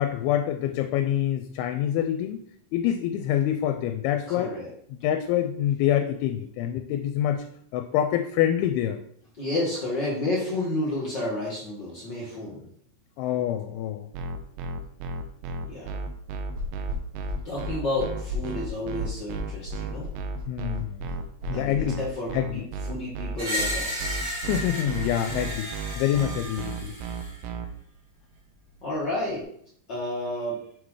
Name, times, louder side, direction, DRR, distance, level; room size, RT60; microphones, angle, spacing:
voice 1, 0.0-2.4 2.7-4.6 4.9-7.4 7.7-9.0 13.2-14.1 20.5-21.0 21.5-22.0 22.3-22.6 24.5-25.7 26.0-26.9, left 11 dB, 90° left, 8 dB, 2.5 m, -26 dB
voice 2, 4.3-4.7 9.4-12.6 15.6-16.0 17.4-20.1 21.5-24.2 28.8-29.5 29.9-30.6, left 1 dB, 60° left, -6 dB, 1.1 m, -31 dB
sound 1, 14.1-27.7, right 4 dB, 80° right, 2.1 m, -33 dB
sound 2, 16.5-21.8, left 2 dB, 60° right, 2.9 m, -34 dB
Screech, 23.4-27.4, left 1 dB, 40° right, 1.1 m, -33 dB
6.5 x 3.8 x 4.8 m, 0.64 s
omnidirectional pair, 4.4 m